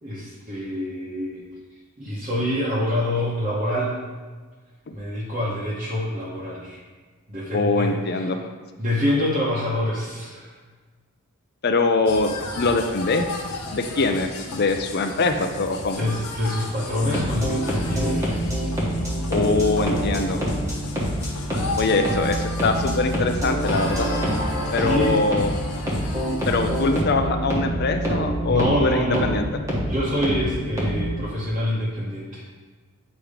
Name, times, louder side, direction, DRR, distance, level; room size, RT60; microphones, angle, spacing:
voice 1, 0.0-1.4 2.0-4.0 4.9-6.8 7.3-8.3 8.8-10.5 16.0-18.3 24.8-25.2 28.5-29.3 29.9-32.4, left 1 dB, 35° right, -8 dB, 1.1 m, -26 dB
voice 2, 7.5-8.4 11.6-12.3 12.5-13.3 13.7-16.1 19.3-20.4 21.8-24.1 24.7-25.6 26.5-29.6, left 3 dB, 45° left, 6 dB, 0.5 m, -23 dB
sound 1, 12.1-27.0, left 2 dB, 90° left, 0.9 m, -35 dB
sound 2, 16.9-31.2, equal, 15° right, 1.2 m, -26 dB
8.3 x 3.0 x 5.0 m, 1.4 s
head